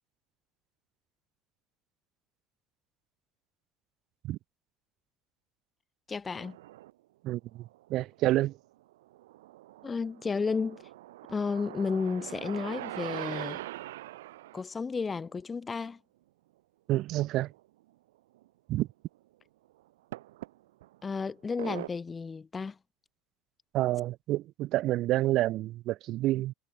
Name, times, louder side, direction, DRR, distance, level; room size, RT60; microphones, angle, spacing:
voice 1, 6.1-6.6 9.8-10.8 11.3-13.6 14.5-16.0 21.0-22.8, left 5 dB, 25° left, 3.9 m, -32 dB
sound 1, 6.3-6.9 7.6-8.5 8.9-14.6 17.0-17.1 17.5-17.6 18.4-18.5 20.1-21.0 21.6-21.9, right 16 dB, 90° right, 5.4 m, -42 dB
voice 2, 7.2-8.6 16.9-17.5 18.7-18.9 23.7-26.5, right 15 dB, 60° right, 7.6 m, -29 dB
supercardioid pair, 95°, 0 cm